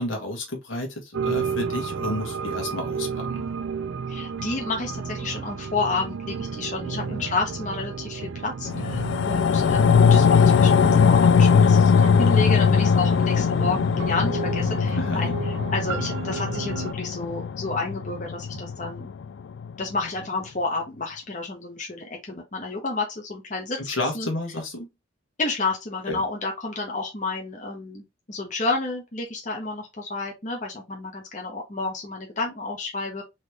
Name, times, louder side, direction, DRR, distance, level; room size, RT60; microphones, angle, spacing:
voice 1, 0.0-3.4 6.8-7.3 15.0-15.3 23.8-24.9 26.1-26.2, left 1 dB, 85° left, 1.6 m, -31 dB
sound 1, 1.1-16.9, right 5 dB, 80° right, 0.5 m, -33 dB
voice 2, 4.1-15.3 15.7-19.1 19.8-23.8 24.1-24.3 25.4-33.2, left 3 dB, 40° left, 1.1 m, -30 dB
sound 2, 8.6-19.2 19.6-19.7, left 6 dB, 70° left, 0.3 m, -20 dB
4.0 x 3.1 x 3.4 m
head